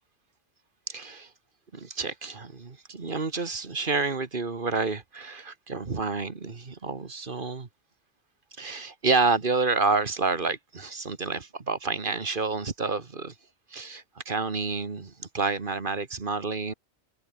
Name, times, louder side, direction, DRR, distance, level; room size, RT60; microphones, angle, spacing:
voice 1, 0.9-1.3 1.7-7.7 8.6-13.3 13.7-16.7, right 4 dB, 45° right, 1.8 m, -29 dB
omnidirectional pair, 1.2 m